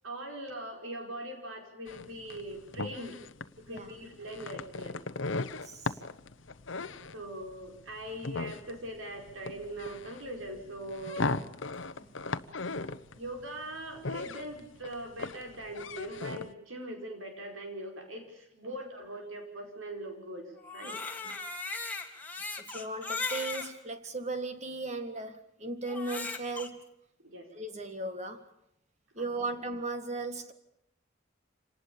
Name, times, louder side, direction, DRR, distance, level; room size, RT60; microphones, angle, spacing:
voice 1, 0.0-3.2 3.6-4.9 7.1-11.3 13.1-21.0 21.2-21.4 27.2-27.5 29.1-29.6, right 1 dB, 85° right, 5.3 m, -41 dB
sound 1, 1.9-16.5, left 3 dB, 70° left, 1.0 m, -38 dB
voice 2, 5.6-5.9 12.0-12.1 18.6-18.7 20.8-21.0 21.3-21.4 22.7-26.9 27.5-28.5 29.2-30.5, right 2 dB, 35° right, 1.8 m, -37 dB
Crying sobbing, 20.6-23.7 24.4-24.5 25.9-26.7, left 3 dB, 10° left, 2.2 m, -37 dB
27.0 x 19.0 x 7.2 m
head